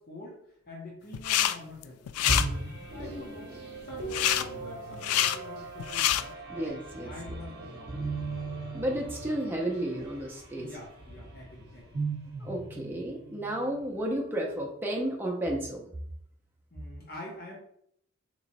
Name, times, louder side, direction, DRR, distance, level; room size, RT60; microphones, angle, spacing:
voice 1, 0.0-3.5 3.8-6.7 7.0-8.5 10.6-12.0 16.7-17.6, left 2 dB, 45° left, -3 dB, 0.9 m, -46 dB
sound 1, 1.1-1.6 1.8-2.5 4.1-4.4 4.9-5.4 5.8-6.2, left 11 dB, 90° left, 0.3 m, -26 dB
sound 2, 2.3-13.9, right 2 dB, 45° right, 0.8 m, -38 dB
voice 2, 6.5-7.1 8.7-10.7 12.4-15.9, right 1 dB, 10° right, -1 dB, 0.7 m, -32 dB
3.4 x 3.1 x 4.1 m, 0.70 s
head